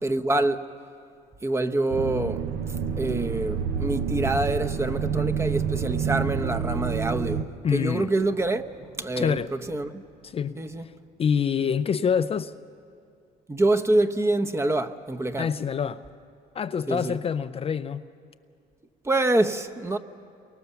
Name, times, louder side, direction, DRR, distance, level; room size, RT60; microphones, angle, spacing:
voice 1, 0.0-0.6 1.4-2.4 3.0-8.6 9.0-10.0 10.5-10.8 13.5-15.5 16.9-17.2 19.0-20.0, right 2 dB, 15° right, 0.9 m, -26 dB
sound 1, 1.9-7.4, right 7 dB, 65° right, 1.0 m, -28 dB
voice 2, 7.6-8.1 9.2-9.5 10.2-10.6 11.2-12.5 15.4-16.0 16.5-18.0, left 7 dB, 35° left, 0.5 m, -26 dB
Thunder, 8.0-12.8, right 2 dB, 85° right, 7.5 m, -53 dB
29.0 x 24.0 x 7.0 m
cardioid pair, 110°, 17 cm